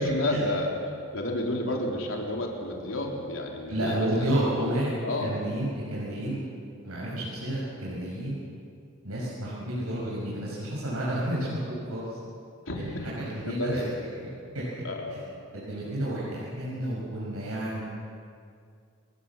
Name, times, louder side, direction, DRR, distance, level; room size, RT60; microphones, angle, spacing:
voice 1, 0.0-4.3 5.0-5.3 12.7-13.1 13.5-14.0 14.8-15.2, left 1 dB, 65° left, 0 dB, 4.0 m, -31 dB
voice 2, 3.7-4.9 5.2-6.4 6.8-8.4 9.0-12.1 12.7-12.8 13.2-13.8 14.5-14.8 15.1-15.2 15.5-17.8, right 1 dB, 85° right, -6 dB, 6.6 m, -30 dB
29.5 x 19.0 x 7.5 m, 2.3 s
head